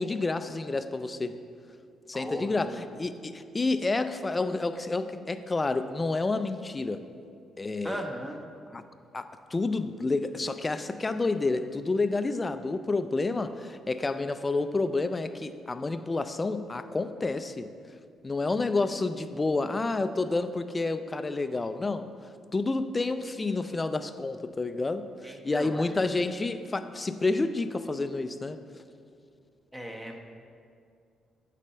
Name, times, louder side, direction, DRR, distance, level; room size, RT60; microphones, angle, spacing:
voice 1, 0.0-1.4 2.1-7.1 7.6-8.0 8.7-8.8 9.1-17.7 18.2-22.1 22.5-28.6, left 3 dB, 25° left, 10 dB, 0.4 m, -29 dB
voice 2, 2.1-2.8 7.8-8.4 25.2-25.8 29.7-30.2, equal, 10° right, 2 dB, 0.9 m, -37 dB
8.6 x 4.2 x 5.6 m, 2.3 s
cardioid pair, 90°, 0 cm